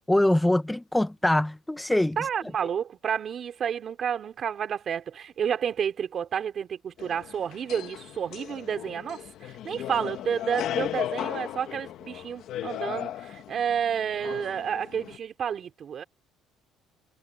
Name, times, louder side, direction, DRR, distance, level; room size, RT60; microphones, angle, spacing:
voice 1, 0.1-2.2, left 1 dB, 5° left, 1.1 m, -23 dB
voice 2, 2.2-16.0, right 8 dB, 40° right, 3.6 m, -30 dB
sound 1, 7.0-15.2, left 12 dB, 65° left, 1.6 m, -36 dB
cardioid pair, 135°, 0 cm